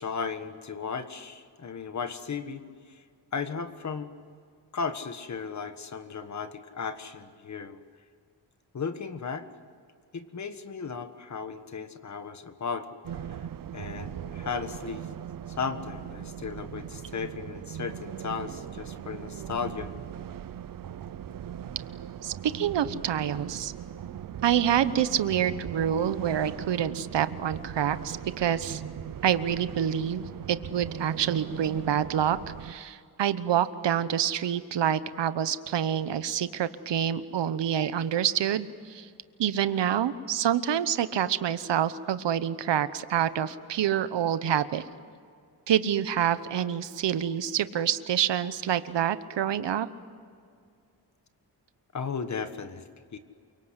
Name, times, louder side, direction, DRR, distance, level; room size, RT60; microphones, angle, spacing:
voice 1, 0.0-2.6 3.3-4.1 4.7-7.8 8.7-9.5 10.1-12.9 13.7-15.1 15.6-19.9 51.9-52.8 53.1-53.2, left 5 dB, 40° left, 9 dB, 1.5 m, -35 dB
sound 1, 13.0-32.7, right 9 dB, 55° right, 0.7 m, -39 dB
voice 2, 22.2-23.7 24.4-28.8 29.2-39.1 39.4-44.8 45.7-49.9, right 9 dB, 90° right, 13 dB, 1.1 m, -27 dB
28.5 x 24.5 x 8.2 m, 2.2 s
wide cardioid pair, 165°, 41 cm